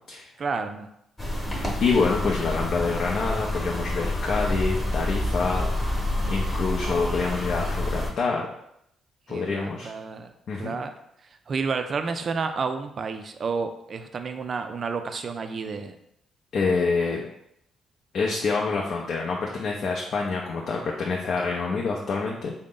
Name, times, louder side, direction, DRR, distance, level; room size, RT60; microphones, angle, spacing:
voice 1, 0.4-0.9 9.3-10.3 10.6-10.9 11.2-16.0, right 5 dB, 45° right, 7 dB, 0.3 m, -30 dB
sound 1, 1.2-8.1, left 1 dB, 20° left, 0.9 m, -28 dB
voice 2, 1.5-5.7 6.3-8.5 9.3-9.9 10.5-10.7 16.5-17.2 18.1-22.5, left 4 dB, 60° left, -1 dB, 0.5 m, -26 dB
3.7 x 2.1 x 3.7 m, 0.77 s
cardioid pair, 90°, 0 cm